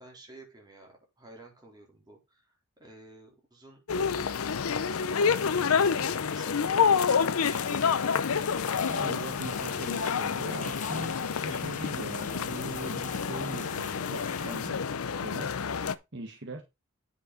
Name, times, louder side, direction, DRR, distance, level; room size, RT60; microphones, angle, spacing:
voice 1, 0.0-3.8 5.7-8.2, right 2 dB, 20° right, 0 dB, 3.7 m, -51 dB
sound 1, 3.9-15.9, left 6 dB, 85° left, 0.6 m, -28 dB
sound 2, 7.4-14.7, left 8 dB, 35° left, 0.7 m, -44 dB
voice 2, 8.8-14.8 15.1-15.5 16.1-16.6, right 2 dB, 55° right, 4 dB, 1.4 m, -40 dB
9.5 x 5.8 x 4.1 m, 0.23 s
head